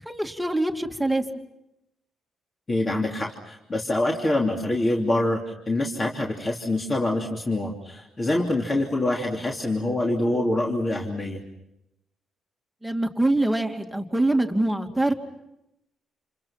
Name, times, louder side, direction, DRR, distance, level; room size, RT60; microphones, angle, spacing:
voice 1, 0.1-1.2 12.8-15.1, right 1 dB, 5° right, 3 dB, 2.4 m, -24 dB
voice 2, 2.7-11.4, left 1 dB, 30° left, -1 dB, 3.0 m, -25 dB
29.0 x 28.0 x 5.9 m, 0.88 s
cardioid pair, 90°, 0 cm